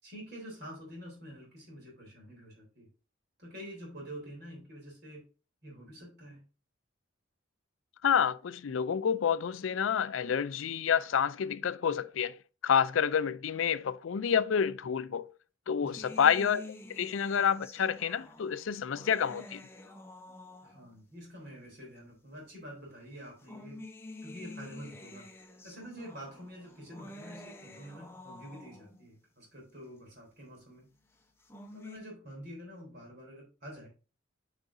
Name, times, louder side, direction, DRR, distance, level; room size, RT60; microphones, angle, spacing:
voice 1, 0.0-2.9 3.4-5.2 5.6-6.4 15.8-16.2 20.6-23.8 24.2-25.3 25.6-30.9 31.7-33.9, equal, 50° right, 3.5 m, -47 dB
voice 2, 8.0-12.3 12.6-15.3 15.7-16.6 16.9-19.6, left 7 dB, 70° left, 0.4 m, -28 dB
sound 1, 16.0-21.1 22.0-22.1 23.2-29.1 31.2-32.0, left 2 dB, 10° left, 0.8 m, -49 dB
9.2 x 5.0 x 2.6 m
head